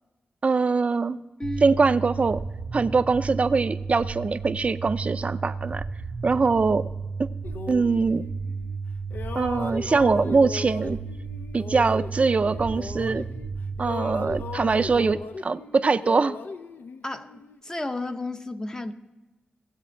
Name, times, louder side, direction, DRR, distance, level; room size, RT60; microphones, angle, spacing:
voice 1, 0.4-1.2 1.6-2.4 2.7-5.9 6.2-6.9 7.7-8.2 9.3-11.0 11.5-13.3 13.8-16.4, right 4 dB, 40° right, 12 dB, 0.4 m, -23 dB
sound 1, 1.4-15.1, right 4 dB, 70° right, 0.7 m, -33 dB
sound 2, 7.4-8.8 9.1-13.5 13.8-17.6, left 4 dB, 80° left, 0.6 m, -38 dB
voice 2, 17.0-18.9, left 2 dB, 20° left, 8 dB, 0.7 m, -32 dB
17.5 x 8.1 x 4.5 m, 1.1 s
wide cardioid pair, 130°, 3 cm